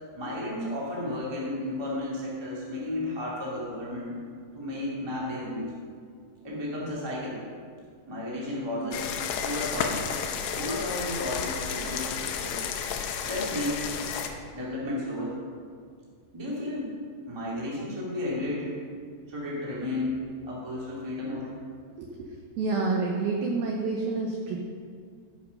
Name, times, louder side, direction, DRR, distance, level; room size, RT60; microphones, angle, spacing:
voice 1, 0.1-4.1 4.5-5.7 6.4-7.4 8.1-9.1 9.4-10.0 10.5-12.6 13.2-13.9 14.5-15.4 16.3-16.9 17.2-18.7 19.3-20.2 20.4-21.5, left 1 dB, 15° right, -6 dB, 1.0 m, -33 dB
sound 1, 8.9-14.3, left 7 dB, 80° left, 2.6 m, -32 dB
voice 2, 22.0-24.6, right 3 dB, 80° right, 0 dB, 2.1 m, -29 dB
14.5 x 6.1 x 5.3 m, 2.1 s
omnidirectional pair, 5.5 m